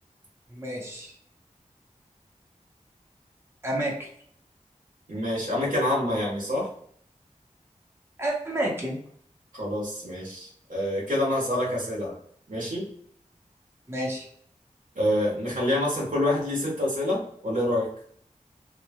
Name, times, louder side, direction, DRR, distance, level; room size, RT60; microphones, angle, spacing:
voice 1, 0.5-1.1 3.6-4.1 8.2-9.0 13.9-14.3, right 1 dB, 20° right, -4 dB, 1.0 m, -30 dB
voice 2, 5.1-6.7 9.5-12.1 12.5-12.9 14.9-17.9, left 1 dB, 75° right, -4 dB, 1.3 m, -27 dB
3.0 x 2.4 x 2.3 m, 0.63 s
wide cardioid pair, 60°, 13 cm